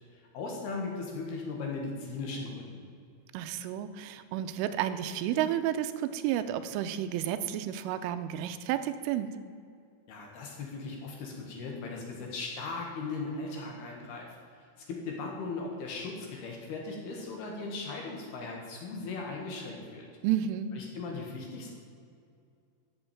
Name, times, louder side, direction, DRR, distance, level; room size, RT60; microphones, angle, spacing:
voice 1, 0.1-2.8 10.1-20.1 20.7-21.7, left 3 dB, 65° left, 0 dB, 3.2 m, -38 dB
voice 2, 3.3-9.3 20.2-20.8, right 11 dB, 90° right, 10 dB, 3.2 m, -31 dB
12.5 x 7.2 x 9.0 m, 2.4 s
omnidirectional pair, 5.6 m